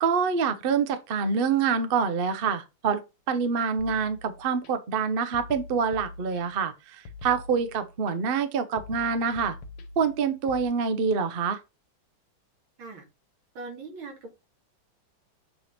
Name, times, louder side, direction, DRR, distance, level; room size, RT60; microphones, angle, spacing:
voice 1, 0.0-3.0 3.3-9.6 10.0-11.6, right 6 dB, 70° right, 0.5 m, -26 dB
sound 1, 3.8-4.7 5.3-6.7 7.0-8.1 8.8-10.6, left 3 dB, 70° left, 1.7 m, -44 dB
voice 2, 13.5-14.4, right 3 dB, 85° right, 2.6 m, -40 dB
7.6 x 3.3 x 4.2 m
omnidirectional pair, 2.2 m